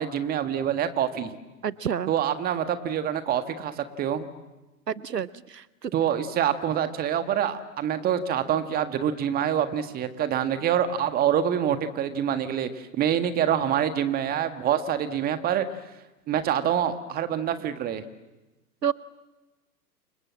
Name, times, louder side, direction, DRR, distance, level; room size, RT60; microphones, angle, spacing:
voice 1, 0.0-1.3 2.1-4.3 5.9-15.6 16.3-18.0, right 9 dB, 20° right, 10 dB, 1.7 m, -26 dB
voice 2, 1.6-2.1 4.9-5.6 18.8-18.9, right 8 dB, 75° right, 19 dB, 0.9 m, -28 dB
29.5 x 26.5 x 7.5 m, 1.1 s
figure-of-eight pair, 110°, 49 cm